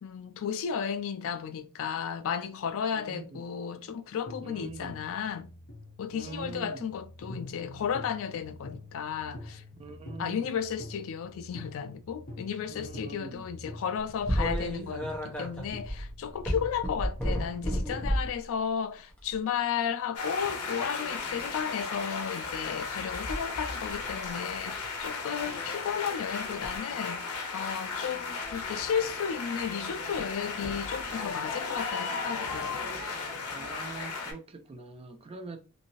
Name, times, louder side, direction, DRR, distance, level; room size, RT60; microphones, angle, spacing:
voice 1, 0.0-5.5 6.0-9.6 10.2-32.8, left 7 dB, 65° left, 0.4 m, -34 dB
voice 2, 2.9-3.4 4.4-5.0 6.1-6.9 9.8-10.6 12.7-13.4 33.5-35.6, right 3 dB, 25° right, 0.3 m, -43 dB
sound 1, 4.3-18.3, left 1 dB, 45° left, 0.8 m, -46 dB
sound 2, 14.2-18.4 19.1-19.4 21.2-21.6 23.3-23.4 23.9-24.3 24.7-25.0 26.4-26.8 28.4-28.6 30.1-30.2 31.8-31.9 32.5-32.6, equal, 5° left, 0.8 m, -32 dB
sound 3, 20.2-34.3, left 4 dB, 90° left, 0.8 m, -35 dB
2.6 x 2.6 x 2.9 m
head